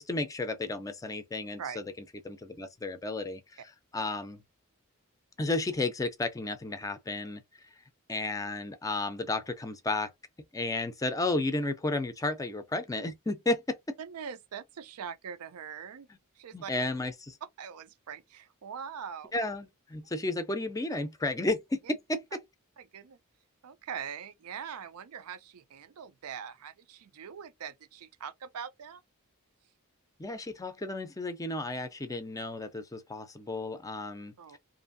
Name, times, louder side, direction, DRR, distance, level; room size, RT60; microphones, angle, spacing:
voice 1, 0.0-1.9 2.2-3.6 3.9-4.4 5.4-7.7 8.1-10.1 10.5-14.0 16.5-17.4 19.3-21.8 22.1-22.4 30.2-34.3, left 2 dB, 15° left, 0.4 m, -33 dB
voice 2, 14.0-16.1 16.4-16.7 17.4-19.3 22.8-23.2 23.6-29.0 34.4-34.6, right 7 dB, 85° right, 0.4 m, -42 dB
2.6 x 2.5 x 2.5 m
head